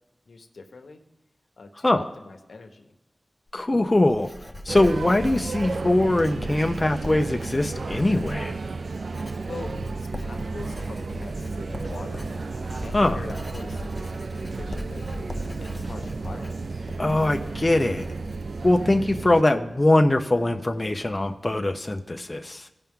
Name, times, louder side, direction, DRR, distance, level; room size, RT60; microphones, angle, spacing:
voice 1, 0.3-1.0 1.6-2.9 9.4-12.3 12.8-14.2 14.5-15.1 15.6-16.9, left 3 dB, 75° left, 5 dB, 0.9 m, -43 dB
voice 2, 3.5-4.3 4.6-8.6 12.9-13.2 17.0-18.1 18.6-22.7, left 1 dB, 25° left, 4 dB, 0.6 m, -22 dB
Writing, 3.5-18.8, equal, ahead, 0.9 m, -41 dB
sound 1, 4.7-19.4, right 4 dB, 70° right, 0.3 m, -33 dB
Drum kit, 8.8-9.0 9.5-16.7, equal, 50° right, 3.7 m, -39 dB
17.0 x 5.7 x 3.6 m, 1.0 s
wide cardioid pair, 95°, 0 cm